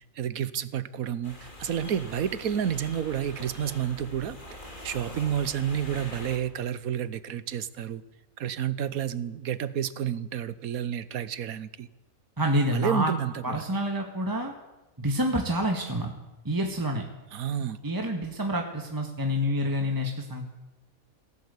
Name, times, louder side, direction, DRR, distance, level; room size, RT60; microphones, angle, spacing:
voice 1, 0.0-4.6 4.8-8.0 8.4-11.9 12.7-13.6 17.3-17.8, right 9 dB, 80° right, 1.3 m, -30 dB
sound 1, 1.2-6.4, left 1 dB, 35° left, 3.1 m, -43 dB
voice 2, 12.4-13.1 13.4-14.5 15.0-16.1 16.5-17.0 17.8-20.5, equal, 15° right, 1.7 m, -27 dB
19.0 x 16.5 x 8.3 m
omnidirectional pair, 1.5 m